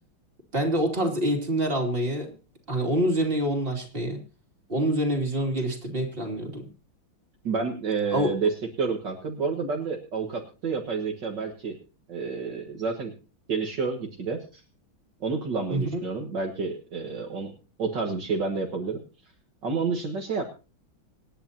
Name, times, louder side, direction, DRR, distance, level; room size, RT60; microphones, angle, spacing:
voice 1, 0.5-2.3 2.7-4.2 4.7-6.7 8.1-8.3 15.7-16.0, right 1 dB, 25° right, 2 dB, 3.0 m, -26 dB
voice 2, 7.4-8.5 8.8-11.8 12.1-13.1 13.5-14.6 15.2-17.5 17.8-19.0 19.6-20.4, right 4 dB, 60° right, 1 dB, 2.1 m, -29 dB
26.5 x 9.7 x 2.8 m, 0.33 s
omnidirectional pair, 2.3 m